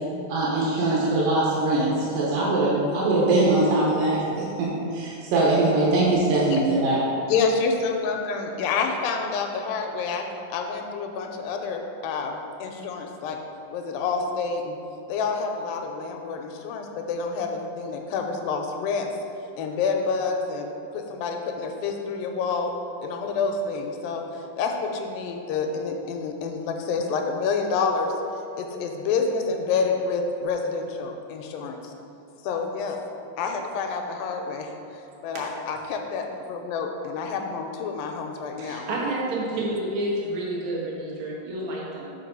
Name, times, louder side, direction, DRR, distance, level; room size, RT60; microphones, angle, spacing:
voice 1, 0.3-7.2, right 2 dB, 85° right, -6 dB, 2.7 m, -22 dB
voice 2, 7.3-13.4 13.7-14.8 15.1-19.1 19.6-22.7 23.0-28.1 28.6-31.9 32.4-33.0 33.4-38.9, left 4 dB, 90° left, 3 dB, 2.4 m, -28 dB
voice 3, 38.6-42.1, right 1 dB, 60° right, -5 dB, 1.3 m, -29 dB
6.0 x 4.6 x 5.2 m, 2.6 s
omnidirectional pair, 4.0 m